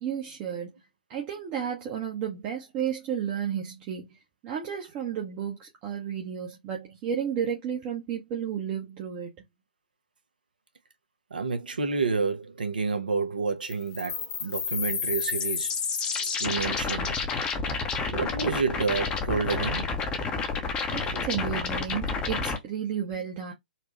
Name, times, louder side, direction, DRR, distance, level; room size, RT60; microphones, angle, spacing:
voice 1, 0.0-0.7 1.1-9.4 20.9-23.5, right 8 dB, 25° right, 0.9 m, -32 dB
voice 2, 11.3-15.7 16.0-17.1 18.1-19.9, right 4 dB, 70° right, 1.0 m, -29 dB
sound 1, 13.7-22.6, left 5 dB, 20° left, 0.9 m, -30 dB
4.2 x 2.4 x 3.0 m
figure-of-eight pair, 125°, 5 cm